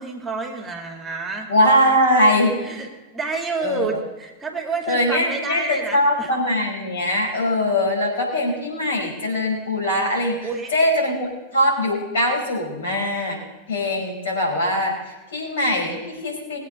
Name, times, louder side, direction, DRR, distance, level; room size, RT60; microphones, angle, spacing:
voice 1, 0.0-1.5 2.6-2.9 3.1-6.3 10.4-10.7, right 4 dB, 15° right, 2 dB, 2.1 m, -29 dB
voice 2, 1.5-2.5 3.6-4.0 4.9-13.4 13.7-16.6, left 1 dB, 65° left, 0 dB, 5.0 m, -21 dB
21.0 x 8.3 x 5.4 m, 1.1 s
figure-of-eight pair, 90°, 0 cm